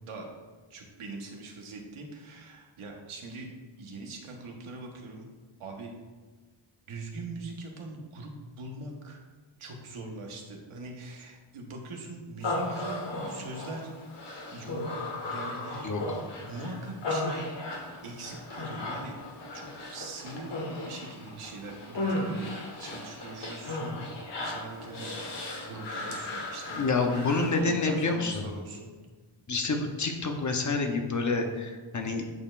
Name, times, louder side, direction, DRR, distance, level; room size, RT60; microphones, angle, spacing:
voice 1, 0.7-3.5 3.7-5.3 5.6-5.9 6.9-9.2 9.6-13.9 14.5-16.0 16.4-17.5 18.0-19.2 19.5-20.5 20.8-22.5 22.8-24.0 24.4-26.9 27.5-28.9 32.0-32.3, right 2 dB, 80° right, 1 dB, 1.3 m, -42 dB
Human voice, 12.4-27.6, left 2 dB, 55° left, 1.5 m, -36 dB
voice 2, 26.8-28.5 29.5-32.3, left 3 dB, 35° left, 3 dB, 0.8 m, -28 dB
8.7 x 6.6 x 2.5 m, 1.4 s
wide cardioid pair, 120°, 50 cm